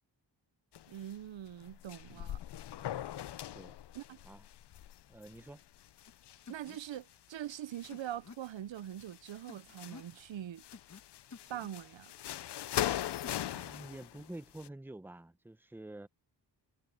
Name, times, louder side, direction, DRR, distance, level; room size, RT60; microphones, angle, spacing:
sound 1, 0.7-1.2 1.4-7.0 7.5-8.5 8.8-10.2 10.6-14.7, left 12 dB, 65° left, 0.6 m, -41 dB
voice 1, 0.9-2.4 3.9-4.2 6.5-10.6 11.5-12.1, right 11 dB, 85° right, 0.7 m, -43 dB
voice 2, 5.1-5.6 13.4-16.1, right 1 dB, 5° right, 0.7 m, -48 dB
sound 2, 6.1-6.2 6.5-6.8 7.9-8.4 9.5-10.1 10.7-11.0 11.3-11.7 13.2-13.4, left 4 dB, 40° left, 1.2 m, -51 dB
wide cardioid pair, 90°, 44 cm